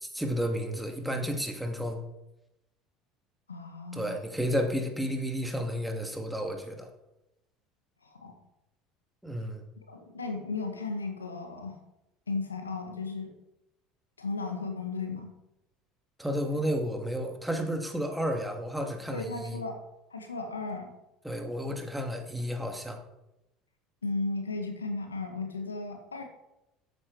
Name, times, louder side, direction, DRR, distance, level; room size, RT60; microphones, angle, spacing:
voice 1, 0.0-2.0 3.9-6.9 9.2-9.6 16.2-19.6 21.2-23.0, equal, 5° right, 4 dB, 2.5 m, -32 dB
voice 2, 3.5-4.2 8.1-8.3 9.9-11.8 12.3-13.3 14.2-15.3 19.1-19.8 20.1-20.9 24.0-26.2, left 3 dB, 90° left, 6 dB, 1.7 m, -35 dB
13.5 x 8.8 x 4.9 m, 0.92 s
figure-of-eight pair, 65°, 0 cm